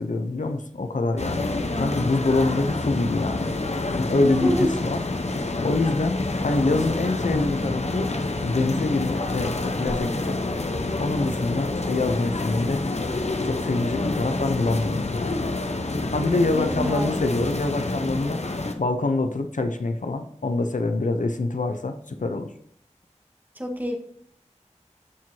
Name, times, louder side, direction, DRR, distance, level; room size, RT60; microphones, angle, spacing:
voice 1, 0.0-1.4 1.8-3.5 3.9-5.3 5.6-8.1 8.4-10.4 11.0-12.8 13.4-15.4 16.1-18.4 18.8-22.5, left 2 dB, 90° left, 7 dB, 0.7 m, -25 dB
sound 1, 1.2-18.7, left 2 dB, 60° left, 0.9 m, -28 dB
voice 2, 4.2-4.7 16.6-17.4 23.6-24.0, equal, 15° right, 1 dB, 1.9 m, -27 dB
13.5 x 4.6 x 2.8 m, 0.67 s
wide cardioid pair, 50°, 13 cm